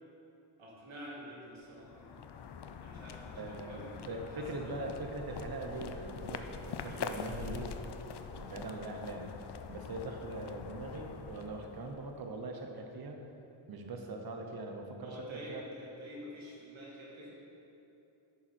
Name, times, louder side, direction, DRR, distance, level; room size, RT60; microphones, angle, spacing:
voice 1, 0.6-2.2 2.8-4.8 8.4-8.6 15.0-17.3, equal, 70° right, -5 dB, 2.4 m, -48 dB
sound 1, 1.6-12.4, left 6 dB, 55° left, 0.6 m, -44 dB
voice 2, 3.4-7.7 8.3-9.3 9.7-13.2 13.7-15.6, right 2 dB, 45° right, 3 dB, 1.0 m, -41 dB
11.0 x 7.2 x 4.4 m, 2.9 s
wide cardioid pair, 115°, 49 cm